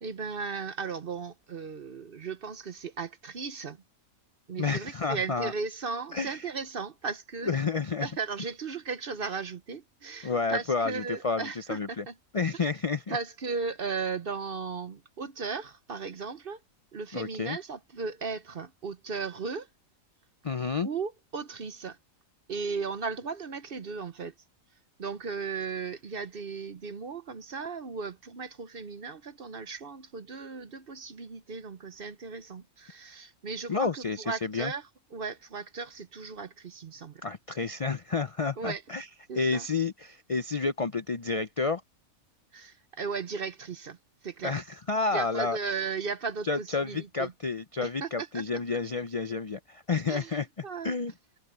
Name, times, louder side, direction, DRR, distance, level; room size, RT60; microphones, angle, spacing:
voice 1, 0.0-3.8 4.5-7.5 8.0-12.1 13.1-16.6 16.9-19.7 20.8-22.0 22.5-24.3 25.0-37.2 38.6-38.8 39.3-39.7 42.5-44.0 44.2-44.6 45.1-47.3 47.8-48.4 50.1-50.4 50.6-50.9, right 5 dB, 45° right, 1.0 m, -36 dB
voice 2, 4.6-5.5 6.1-6.4 7.4-8.1 10.2-12.1 12.3-13.2 17.1-17.6 20.4-20.9 33.7-34.7 37.2-39.1 39.4-41.8 44.4-45.6 46.4-50.5 50.8-51.1, left 4 dB, 45° left, 0.4 m, -30 dB
omnidirectional pair, 1.5 m